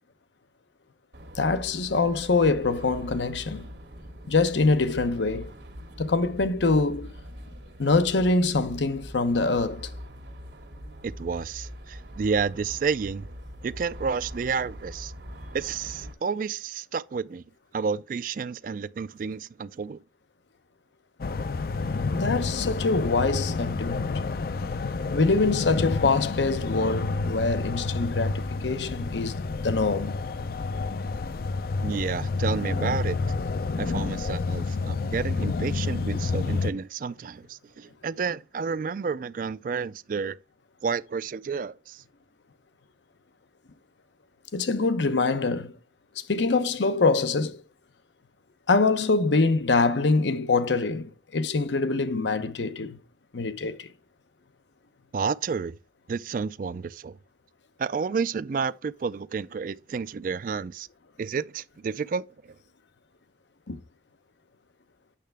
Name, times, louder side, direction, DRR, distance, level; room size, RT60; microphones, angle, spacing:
sound 1, 1.1-16.1, equal, 75° right, 1.6 m, -42 dB
voice 1, 1.4-3.7 4.3-5.5 6.0-7.1 7.8-9.9 22.1-24.1 25.1-30.2 44.5-45.7 46.2-47.6 48.7-53.0 53.3-53.9 63.7-63.8, left 3 dB, 85° left, 0.8 m, -24 dB
voice 2, 11.0-13.2 13.6-15.1 15.5-17.4 17.7-20.0 31.8-33.2 33.8-40.4 40.8-42.0 55.1-55.7 56.1-57.2 57.8-60.9 61.2-62.3, right 5 dB, 50° right, 0.3 m, -30 dB
sound 2, 21.2-36.7, left 4 dB, 55° left, 0.4 m, -29 dB
8.5 x 6.6 x 3.4 m
head